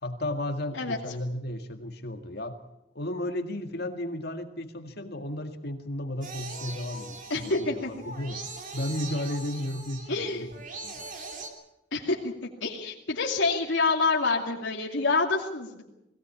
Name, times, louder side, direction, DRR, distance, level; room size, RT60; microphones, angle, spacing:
voice 1, 0.0-2.6 3.0-8.5 8.7-10.5 10.8-11.0, left 1 dB, 60° left, 6 dB, 1.9 m, -34 dB
sound 1, 6.2-11.5, right 3 dB, 45° right, 3.2 m, -41 dB
voice 2, 7.3-7.9 10.1-10.5 11.9-12.3 12.6-15.8, left 3 dB, 85° left, -2 dB, 2.6 m, -27 dB
21.0 x 17.0 x 8.5 m, 0.87 s
head